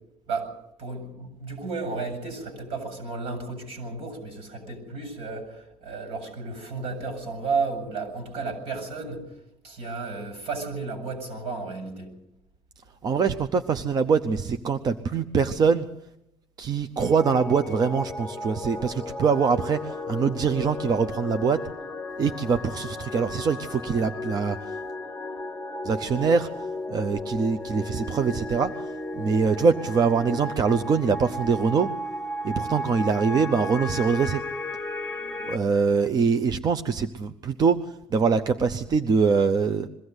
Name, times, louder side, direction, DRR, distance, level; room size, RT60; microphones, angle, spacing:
voice 1, 0.8-9.2 9.6-12.1, right 4 dB, 75° right, 7 dB, 7.7 m, -33 dB
voice 2, 13.0-15.9 16.6-21.6 22.2-24.8 25.8-26.5 26.9-28.9 29.1-31.9 32.4-34.4 35.5-39.9, right 5 dB, 40° right, 9 dB, 0.8 m, -23 dB
sound 1, 17.0-35.6, left 1 dB, 10° left, 1.2 m, -34 dB
22.0 x 15.0 x 8.1 m, 0.83 s
cardioid pair, 110°, 10 cm